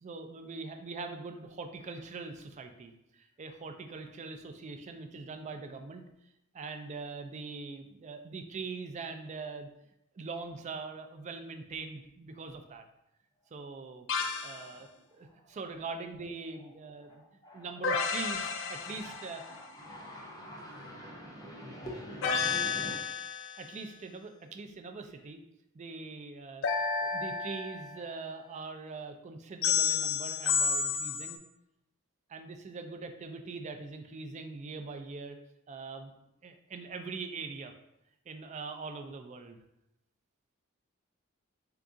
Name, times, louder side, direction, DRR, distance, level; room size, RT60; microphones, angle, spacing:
voice 1, 0.0-6.0 6.5-9.7 10.1-12.8 13.5-14.1 14.4-17.2 17.5-19.4 23.6-25.4 25.7-26.7 27.0-31.4 32.3-35.4 35.7-36.1 36.4-37.7 38.3-39.6, right 4 dB, 35° right, 6 dB, 0.3 m, -42 dB
sound 1, 14.1-14.6 17.8-19.5 22.2-23.6 26.6-28.1 29.6-31.4, left 6 dB, 65° left, 0.4 m, -31 dB
voice 2, 14.5-14.9 15.3-15.4 17.0-17.7 18.4-22.9, equal, 20° left, -2 dB, 0.6 m, -46 dB
3.8 x 2.3 x 3.6 m, 0.84 s
head